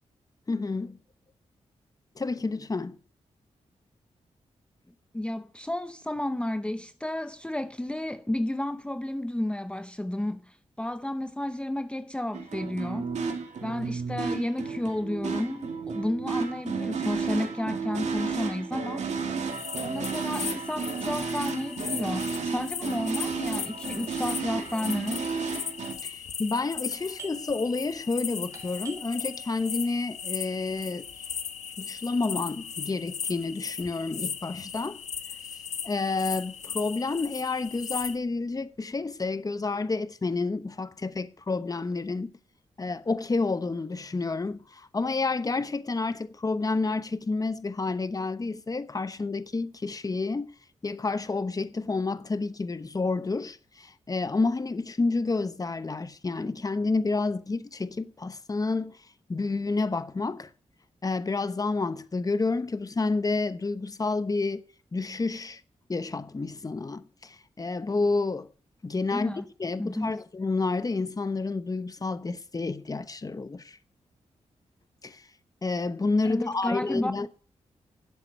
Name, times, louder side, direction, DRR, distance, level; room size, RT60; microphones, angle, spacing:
voice 1, 0.5-1.0 2.2-3.0 26.0-31.3 31.6-35.0 35.8-42.3 42.8-50.5 50.8-58.9 59.3-60.5 61.0-64.6 64.9-65.6 65.9-68.5 68.8-69.3 69.6-73.8 75.0-75.2 75.6-77.3, left 3 dB, 30° left, 1.0 m, -29 dB
voice 2, 5.1-13.1 13.6-19.1 19.8-25.4 69.1-69.4 69.8-70.1 76.3-77.3, left 1 dB, 10° left, 0.7 m, -32 dB
sound 1, 12.3-25.9, right 5 dB, 75° right, 2.3 m, -32 dB
sound 2, 19.5-38.2, left 7 dB, 70° left, 1.2 m, -37 dB
Doorbell, 26.8-36.2 36.5-36.6 37.2-37.6 37.9-39.3, right 4 dB, 30° right, 3.5 m, -53 dB
11.5 x 8.0 x 7.9 m
cardioid pair, 70°, 12 cm